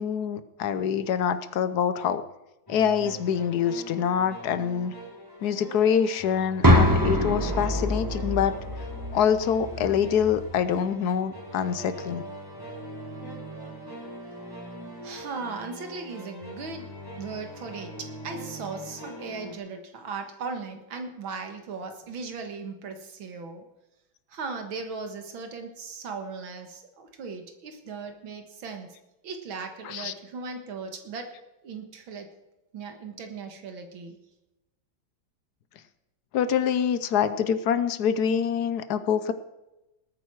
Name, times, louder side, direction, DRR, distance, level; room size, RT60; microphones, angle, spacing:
voice 1, 0.0-2.2 2.7-4.9 5.4-8.5 9.1-12.2 29.8-30.1 36.3-39.3, left 8 dB, 65° left, 13 dB, 1.1 m, -25 dB
sound 1, 2.7-19.6, right 1 dB, 10° left, 3.1 m, -42 dB
sound 2, 6.6-10.6, equal, 15° right, 1.0 m, -24 dB
voice 2, 15.0-16.9 17.2-23.6 24.3-28.9 29.2-31.3 31.6-32.3 32.7-34.2, right 4 dB, 75° right, 6 dB, 2.3 m, -37 dB
19.0 x 9.1 x 4.7 m, 0.98 s
omnidirectional pair, 2.2 m